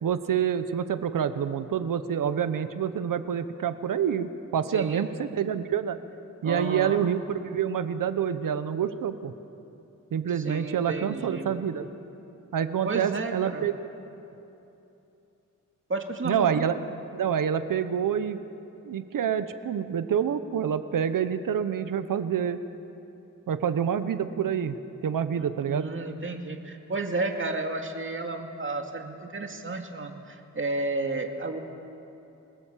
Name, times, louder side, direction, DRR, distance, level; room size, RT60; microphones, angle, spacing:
voice 1, 0.0-6.0 6.4-9.3 10.1-11.9 12.5-13.7 16.2-16.8 17.1-18.4 18.8-22.6 23.5-24.8 25.0-25.9, right 8 dB, 90° right, 11 dB, 1.0 m, -27 dB
voice 2, 4.7-5.1 6.4-7.0 10.4-11.5 12.8-13.7 15.9-16.7 25.7-31.6, right 3 dB, 40° right, 4 dB, 2.3 m, -32 dB
28.0 x 19.0 x 7.5 m, 2.9 s
wide cardioid pair, 90°, 32 cm